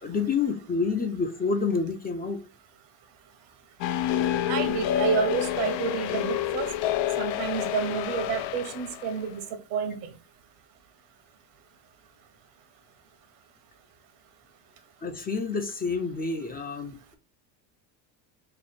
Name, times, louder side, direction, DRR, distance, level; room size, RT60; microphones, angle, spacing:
voice 1, 0.0-2.4 15.0-17.2, left 4 dB, 20° left, 0.4 m, -28 dB
sound 1, 3.8-9.1, left 11 dB, 70° left, 0.5 m, -28 dB
voice 2, 4.5-6.7 7.2-9.4 9.7-10.1, right 6 dB, 85° right, 1.0 m, -29 dB
3.1 x 2.4 x 4.2 m
cardioid pair, 125°, 45 cm